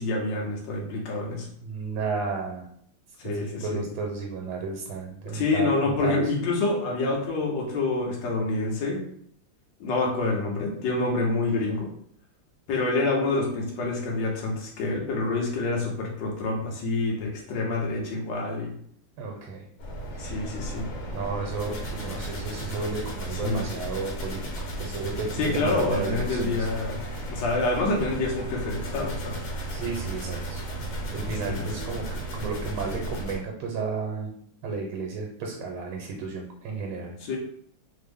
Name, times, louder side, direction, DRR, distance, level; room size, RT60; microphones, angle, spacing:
voice 1, 0.0-1.5 3.2-3.8 5.2-9.0 9.8-11.9 12.7-18.7 20.2-20.9 23.4-23.6 25.3-27.0 27.3-29.4 31.2-31.7 37.2-37.4, left 3 dB, 70° left, -1 dB, 1.4 m, -27 dB
voice 2, 1.6-2.7 3.3-6.2 19.2-19.7 20.1-20.4 21.1-26.7 29.7-30.6 31.1-34.3 34.6-37.1, right 4 dB, 75° right, 1 dB, 1.3 m, -33 dB
sound 1, 19.8-33.4, right 1 dB, 85° left, 1.6 m, -34 dB
3.5 x 2.0 x 3.4 m, 0.64 s
omnidirectional pair, 2.2 m